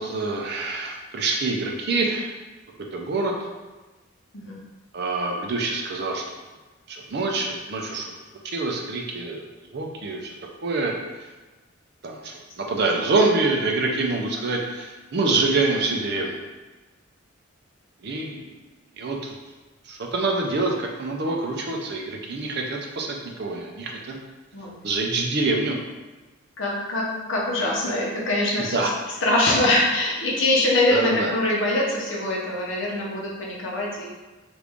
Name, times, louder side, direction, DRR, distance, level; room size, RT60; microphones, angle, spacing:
voice 1, 0.0-2.3 2.9-3.3 4.9-6.2 6.9-8.1 8.4-9.5 9.7-10.3 10.6-10.9 12.0-16.4 18.0-18.4 19.0-19.3 19.9-23.1 23.4-24.2 24.8-25.8 28.7-28.9 30.9-31.4, right 3 dB, 50° right, 1 dB, 0.5 m, -25 dB
voice 2, 26.6-28.9 29.2-34.0, left 1 dB, 65° left, -3 dB, 0.8 m, -23 dB
3.1 x 2.5 x 3.5 m, 1.2 s
head